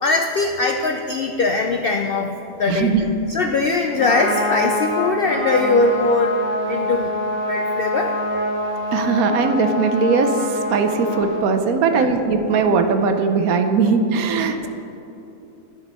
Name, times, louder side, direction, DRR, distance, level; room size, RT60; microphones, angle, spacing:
voice 1, 0.0-2.9 3.3-6.4 6.7-7.1 7.4-8.1 11.9-12.1, left 3 dB, 70° left, 4 dB, 0.5 m, -21 dB
voice 2, 2.7-3.1 8.9-14.7, right 4 dB, 80° right, 7 dB, 1.2 m, -19 dB
Trumpet, 3.8-11.4, left 1 dB, 10° right, 1.7 m, -25 dB
12.5 x 5.4 x 5.4 m, 2.9 s
omnidirectional pair, 1.5 m